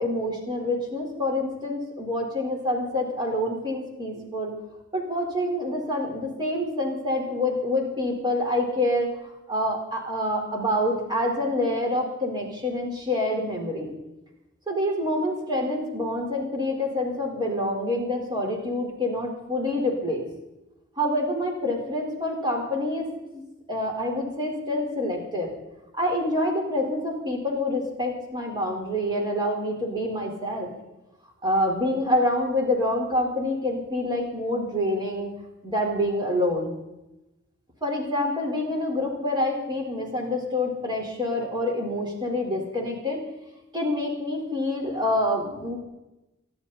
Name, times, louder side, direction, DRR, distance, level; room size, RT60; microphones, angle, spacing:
voice 1, 0.0-4.5 4.9-13.9 14.7-20.2 21.0-23.1 23.3-23.4 23.7-25.5 25.9-30.7 31.4-35.3 35.6-36.7 37.8-43.2 43.7-45.8, left 1 dB, 20° right, 0 dB, 4.3 m, -27 dB
27.5 x 11.5 x 4.2 m, 0.96 s
head